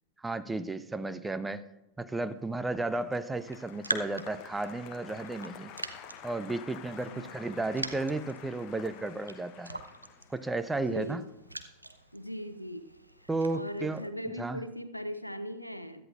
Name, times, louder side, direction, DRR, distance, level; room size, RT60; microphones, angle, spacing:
voice 1, 0.2-1.6 2.0-5.7 6.2-9.8 10.3-11.2 13.3-14.1 14.4-14.6, right 2 dB, 10° right, 12 dB, 0.6 m, -33 dB
Applause, 2.5-12.9 13.1-13.8, left 9 dB, 40° left, 0.9 m, -50 dB
Raindrop, 3.4-14.1, right 1 dB, 85° right, 0.7 m, -43 dB
voice 2, 10.8-11.3 12.1-12.9 13.2-16.1, equal, 90° left, 12 dB, 0.6 m, -39 dB
17.0 x 13.0 x 2.5 m, 0.91 s
figure-of-eight pair, 90°, 0 cm